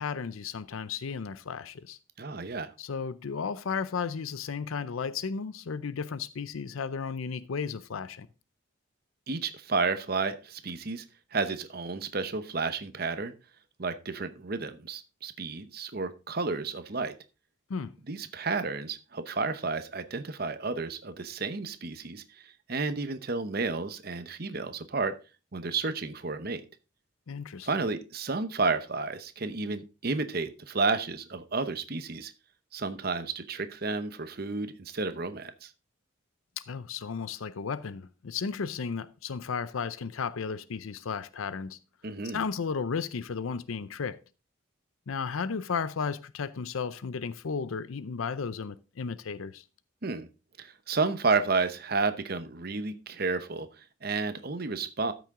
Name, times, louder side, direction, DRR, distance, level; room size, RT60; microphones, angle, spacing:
voice 1, 0.0-2.0 2.8-8.3 17.7-18.0 27.3-27.7 36.6-41.8 42.2-44.2 45.1-49.6, left 5 dB, 80° left, 0.5 m, -34 dB
voice 2, 2.2-2.7 9.3-11.0 11.3-13.3 13.8-17.1 18.1-25.1 25.5-26.6 27.6-32.3 32.7-35.7 42.0-42.4 50.0-50.3 50.6-55.1, right 4 dB, 45° right, 0.8 m, -31 dB
13.0 x 6.2 x 3.7 m
head